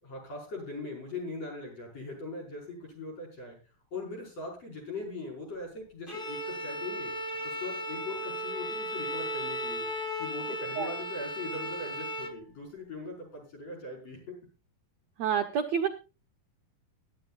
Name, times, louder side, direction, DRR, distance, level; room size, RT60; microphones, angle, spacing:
voice 1, 0.0-3.6 3.9-7.1 7.4-9.9 10.2-14.3, left 2 dB, 45° left, 2 dB, 6.3 m, -40 dB
Bowed string instrument, 6.1-12.4, equal, 30° left, 1.0 m, -36 dB
sound 1, 7.8-12.0, left 6 dB, 90° left, 5.3 m, -51 dB
voice 2, 15.2-15.9, right 7 dB, 70° right, 7 dB, 1.7 m, -28 dB
21.5 x 11.5 x 2.4 m, 0.31 s
omnidirectional pair, 4.1 m